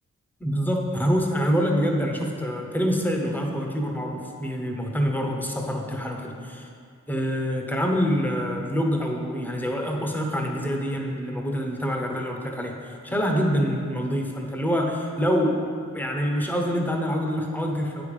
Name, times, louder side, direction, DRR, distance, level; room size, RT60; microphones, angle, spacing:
voice 1, 0.4-6.7 7.1-15.6 15.9-18.0, equal, 5° left, 1 dB, 0.9 m, -26 dB
9.1 x 5.1 x 5.4 m, 2.4 s
wide cardioid pair, 125°, 31 cm